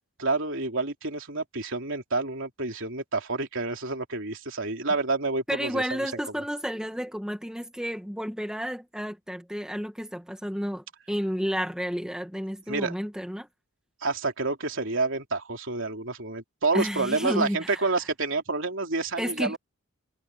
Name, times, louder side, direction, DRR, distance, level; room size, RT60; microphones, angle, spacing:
voice 1, 0.2-6.1 12.7-12.9 14.0-19.6, right 3 dB, 60° right, 3.5 m, -29 dB
voice 2, 5.5-13.5 16.7-17.8 19.2-19.6, equal, 5° right, 2.0 m, -31 dB
head